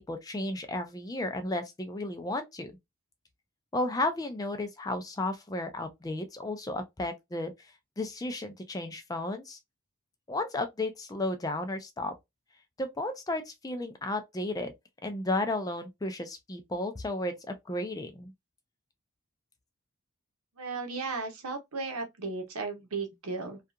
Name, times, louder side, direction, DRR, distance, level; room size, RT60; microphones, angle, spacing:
voice 1, 0.0-2.7 3.7-7.5 8.0-9.6 10.3-12.1 12.8-14.7 15.0-18.3, left 2 dB, 15° left, 0.3 m, -33 dB
voice 2, 20.6-23.6, right 4 dB, 85° right, 0.9 m, -35 dB
2.7 x 2.4 x 2.2 m
head